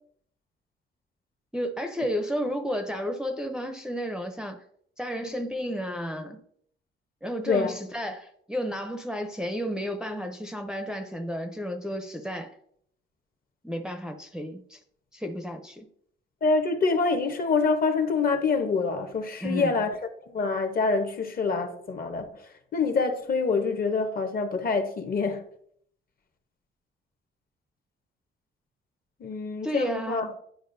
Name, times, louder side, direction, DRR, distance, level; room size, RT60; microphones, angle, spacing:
voice 1, 1.5-4.6 5.0-6.4 7.2-12.5 13.6-14.8 15.1-15.9 19.4-19.8 29.6-30.4, equal, 5° right, 0.5 m, -32 dB
voice 2, 7.5-7.8 16.4-20.0 20.2-22.4 22.7-25.4 29.2-30.3, left 4 dB, 45° left, 0.9 m, -26 dB
10.5 x 4.7 x 2.6 m
cardioid pair, 130°, 21 cm